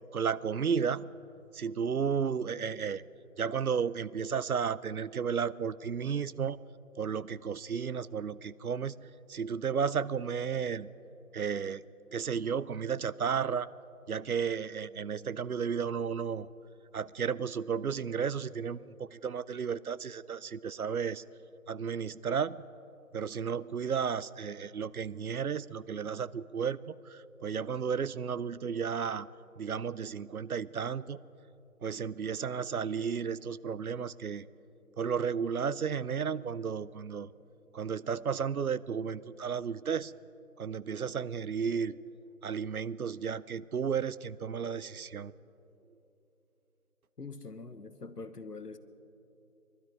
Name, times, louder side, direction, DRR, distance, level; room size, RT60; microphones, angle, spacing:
voice 1, 0.1-1.1 1.5-3.0 3.4-6.6 7.0-10.9 11.3-11.8 12.1-13.7 14.1-16.5 16.9-21.2 21.7-22.6 23.1-29.3 29.6-31.2 31.8-34.5 35.0-37.3 37.7-40.1 40.6-42.0 42.4-45.3, right 6 dB, 70° right, 19 dB, 0.5 m, -33 dB
voice 2, 47.2-48.8, left 3 dB, 85° left, 11 dB, 1.2 m, -44 dB
22.0 x 12.5 x 4.9 m, 3.0 s
figure-of-eight pair, 165°, 46 cm